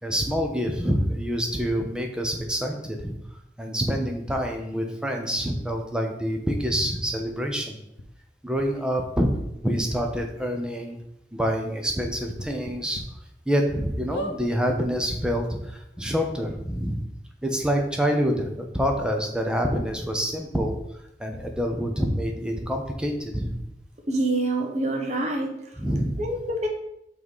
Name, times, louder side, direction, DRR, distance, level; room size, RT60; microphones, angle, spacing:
voice 1, 0.0-7.8 8.4-9.3 9.6-11.0 11.3-13.0 13.5-17.0 17.4-20.7 21.2-23.6 25.8-26.3, equal, 5° right, 3 dB, 0.8 m, -26 dB
sound 1, 8.0-8.1 8.6-8.7 9.6-9.7 10.1-10.2 10.6-10.7 12.3-13.0 13.5-13.6 14.1-14.4 15.2-15.3 15.5-15.6, left 1 dB, 80° left, 0.9 m, -35 dB
voice 2, 24.1-25.5 26.2-26.7, right 1 dB, 40° right, 2 dB, 1.2 m, -26 dB
5.6 x 4.0 x 5.5 m, 0.79 s
head